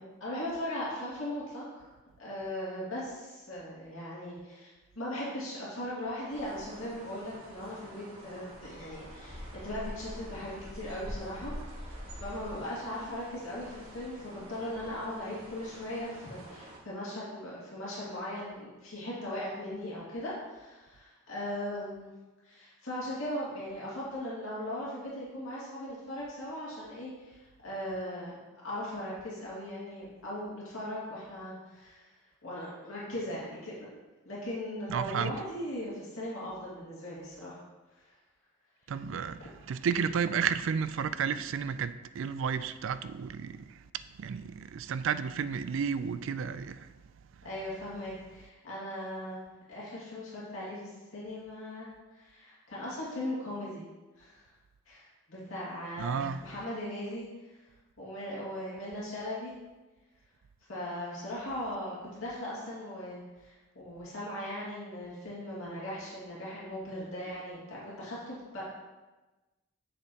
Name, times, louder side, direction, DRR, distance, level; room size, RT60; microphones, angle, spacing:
voice 1, 0.0-1.8 2.2-22.1 22.4-28.4 28.6-32.1 32.4-33.9 34.2-37.6 37.9-38.1 39.1-39.3 47.4-49.4 49.7-53.9 54.2-54.5 54.9-59.5 60.7-68.7, left 1 dB, 70° left, 2.3 m, -39 dB
sound 1, 6.3-16.8, equal, 90° right, 1.6 m, -46 dB
voice 2, 34.9-35.3 38.9-39.4 39.7-43.8 44.2-46.9 56.0-56.4, right 6 dB, 65° right, 0.3 m, -32 dB
7.5 x 6.6 x 2.9 m
head